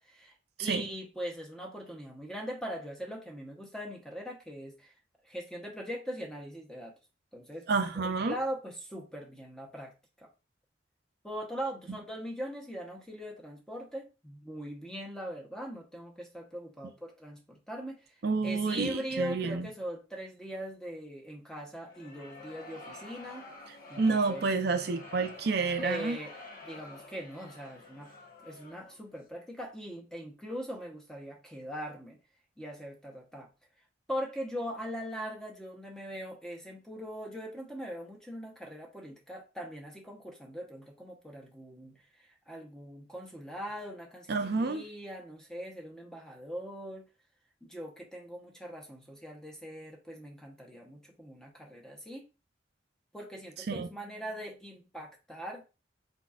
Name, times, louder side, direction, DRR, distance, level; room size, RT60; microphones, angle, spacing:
voice 1, 0.6-4.9 5.2-7.0 7.3-7.7 7.9-9.9 10.2-10.3 11.2-18.0 18.4-23.4 23.9-24.5 25.8-26.3 26.6-28.1 28.4-32.2 32.6-33.5 34.1-47.0 47.6-52.2 53.1-55.6, equal, 5° left, 0.9 m, -41 dB
voice 2, 7.7-8.3 11.9-12.0 18.2-19.7 24.0-26.2 44.3-44.8 53.7-53.9, right 4 dB, 60° right, 0.5 m, -29 dB
sound 1, 21.8-29.0, left 2 dB, 50° left, 1.0 m, -49 dB
4.2 x 4.1 x 2.4 m
head